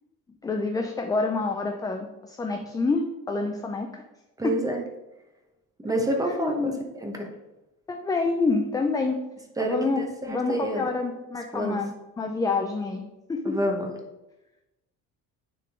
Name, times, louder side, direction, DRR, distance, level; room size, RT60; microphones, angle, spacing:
voice 1, 0.4-3.9 4.4-4.6 6.2-6.8 7.9-9.2 9.6-13.0 13.3-13.6, left 3 dB, 10° left, 3 dB, 0.3 m, -27 dB
voice 2, 4.4-4.8 5.8-6.7 7.0-7.3 9.6-10.9 11.5-11.8 13.4-13.9, right 1 dB, 10° right, 3 dB, 0.9 m, -28 dB
9.8 x 3.6 x 3.6 m, 0.99 s
cardioid pair, 160°, 34 cm